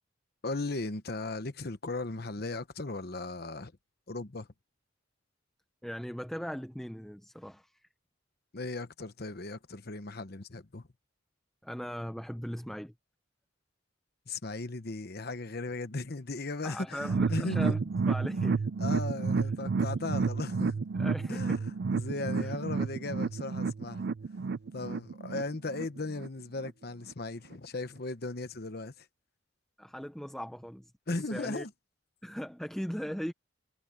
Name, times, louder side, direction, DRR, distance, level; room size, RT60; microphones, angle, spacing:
voice 1, 0.4-3.7 4.1-4.5 8.5-10.9 14.3-17.0 17.3-17.8 18.8-20.9 21.3-24.0 24.7-29.1 31.1-31.7, left 2 dB, 50° left, 1.1 m, -37 dB
voice 2, 5.8-7.9 11.6-12.9 16.6-17.8 18.1-18.7 20.9-21.7 22.4-22.5 24.9-25.0 29.8-31.7 32.2-33.3, equal, ahead, 0.7 m, -39 dB
sound 1, 17.0-26.3 26.6-26.7 27.1-27.2, right 4 dB, 55° right, 0.4 m, -31 dB
head